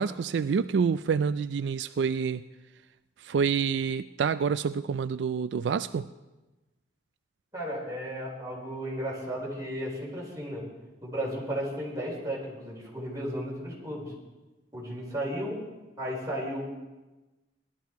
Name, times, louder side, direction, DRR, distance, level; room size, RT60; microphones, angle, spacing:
voice 1, 0.0-2.4 3.2-6.1, right 6 dB, 75° right, 13 dB, 0.3 m, -27 dB
voice 2, 7.5-10.7 11.0-14.1 14.7-15.6 16.0-16.6, equal, 20° right, -4 dB, 4.4 m, -34 dB
18.0 x 12.0 x 4.7 m, 1.1 s
head